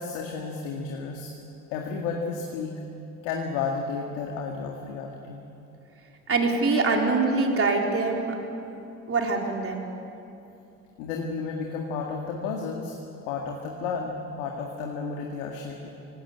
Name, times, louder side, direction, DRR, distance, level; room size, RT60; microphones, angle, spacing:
voice 1, 0.0-1.3 1.7-2.7 3.2-5.5 11.0-13.0 13.3-15.9, left 5 dB, 85° left, 0 dB, 2.1 m, -32 dB
voice 2, 6.3-8.4 9.1-9.9, right 3 dB, 35° right, 1 dB, 3.8 m, -24 dB
19.0 x 17.5 x 9.2 m, 2.7 s
supercardioid pair, 75°, 37 cm